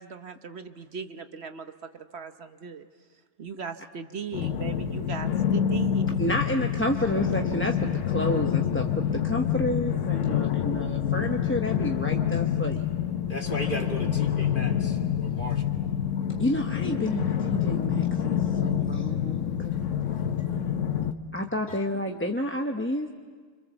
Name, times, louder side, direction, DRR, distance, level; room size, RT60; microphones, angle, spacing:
voice 1, 0.0-1.6 2.1-2.8 3.4-6.0, right 5 dB, 60° right, 8 dB, 1.2 m, -38 dB
sound 1, 4.3-21.1, left 9 dB, 85° left, 1.3 m, -27 dB
voice 2, 6.2-7.8 8.1-12.8 16.4-19.7 21.3-23.1, left 1 dB, 10° left, 2 dB, 0.8 m, -30 dB
voice 3, 13.3-15.6 18.5-18.6 21.7-21.8, equal, 45° left, 2 dB, 2.3 m, -36 dB
30.0 x 26.0 x 7.2 m, 1.5 s
omnidirectional pair, 1.2 m